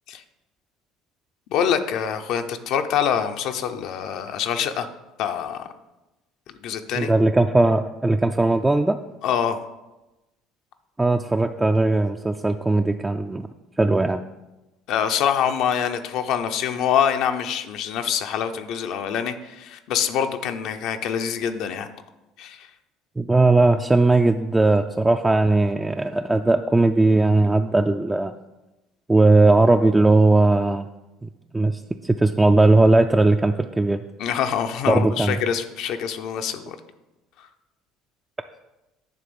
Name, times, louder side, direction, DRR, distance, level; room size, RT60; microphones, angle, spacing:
voice 1, 1.5-4.9 5.2-5.7 6.6-7.1 9.2-9.6 14.9-21.9 22.4-22.7 34.2-36.8, left 8 dB, 65° left, 7 dB, 0.7 m, -25 dB
voice 2, 7.0-9.0 11.0-13.5 13.8-14.2 23.2-28.3 29.1-30.9 31.2-31.3 31.5-34.0 34.9-35.4, right 2 dB, 10° right, 5 dB, 0.4 m, -18 dB
9.5 x 3.5 x 7.0 m, 1.0 s
supercardioid pair, 100°, 0 cm